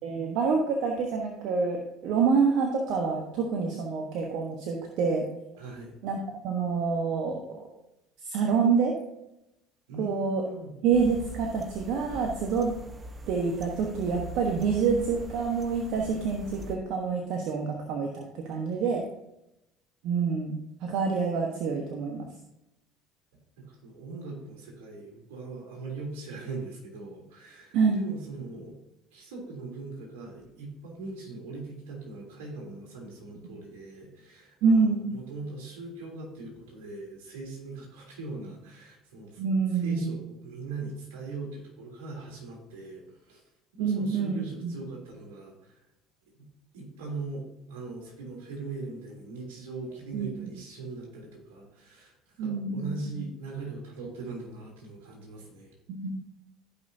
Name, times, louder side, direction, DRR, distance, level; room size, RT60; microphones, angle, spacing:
voice 1, 0.0-5.2 6.0-7.6 8.2-8.9 10.0-10.4 10.8-12.7 13.3-19.0 20.0-22.3 27.7-28.0 34.6-35.1 39.4-40.2 43.8-44.8 50.1-50.3 52.4-53.3 55.9-56.1, right 5 dB, 70° right, 1 dB, 1.2 m, -27 dB
voice 2, 5.6-5.9 9.9-10.7 23.6-28.7 29.1-39.4 39.7-43.4 43.7-45.8 46.3-46.5 46.7-55.7, right 3 dB, 85° right, -1 dB, 3.2 m, -40 dB
sound 1, 10.9-16.8, right 2 dB, 30° right, 1.1 m, -42 dB
14.5 x 5.5 x 2.8 m, 0.87 s
supercardioid pair, 80°, 0 cm